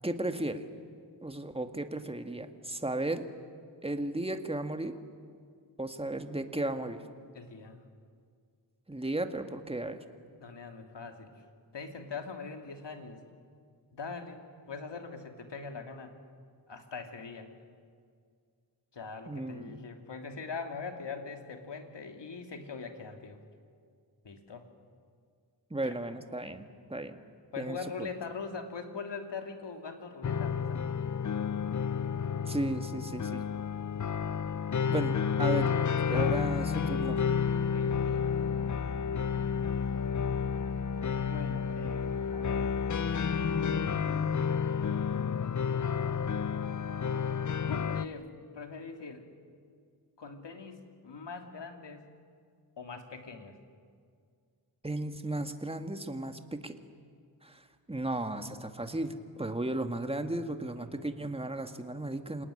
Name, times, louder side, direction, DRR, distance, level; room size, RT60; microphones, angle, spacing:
voice 1, 0.0-0.6 1.2-3.3 3.8-4.9 5.8-7.0 8.9-10.0 19.3-19.8 25.7-26.6 26.9-27.2 27.6-28.1 32.5-33.5 34.9-35.7 36.1-37.3 54.8-56.8 57.4-62.5, right 1 dB, 15° right, 7 dB, 1.9 m, -35 dB
voice 2, 7.3-7.8 10.4-11.3 11.7-13.2 13.9-16.1 16.7-17.5 18.9-23.4 24.2-24.6 25.8-25.9 27.5-30.8 37.7-39.2 41.1-42.8 43.3-44.3 47.6-49.3 50.2-52.1 52.8-53.6 60.9-61.0, left 4 dB, 65° left, 5 dB, 2.9 m, -42 dB
sound 1, 30.2-48.1, left 6 dB, 40° left, 0.7 m, -30 dB
27.5 x 19.0 x 10.0 m, 2.1 s
cardioid pair, 60°, 45 cm